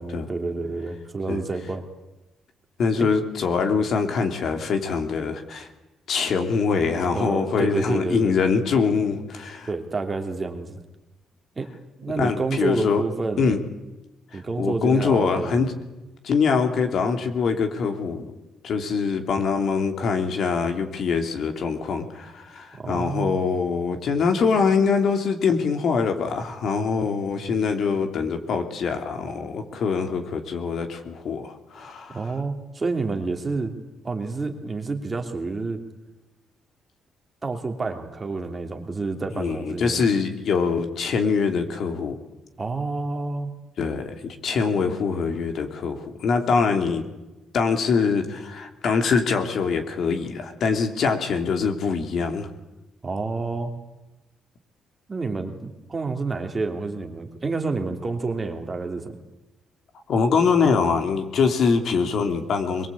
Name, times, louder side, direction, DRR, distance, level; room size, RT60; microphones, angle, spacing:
voice 1, 0.0-1.9 3.0-3.1 7.1-8.3 9.7-10.8 11.6-11.7 12.0-13.6 14.3-15.7 22.8-23.4 32.1-33.7 34.0-35.8 37.4-40.1 42.6-43.5 53.0-53.7 55.1-59.1, right 3 dB, 25° right, 5 dB, 2.9 m, -29 dB
voice 2, 2.8-5.7 6.1-9.7 12.2-13.0 13.4-13.6 14.3-15.7 16.2-18.2 18.6-32.2 39.3-42.2 43.8-47.0 47.5-52.5 60.1-62.9, left 5 dB, 60° left, 6 dB, 2.9 m, -23 dB
22.5 x 22.0 x 8.5 m, 1.0 s
cardioid pair, 110°, 0 cm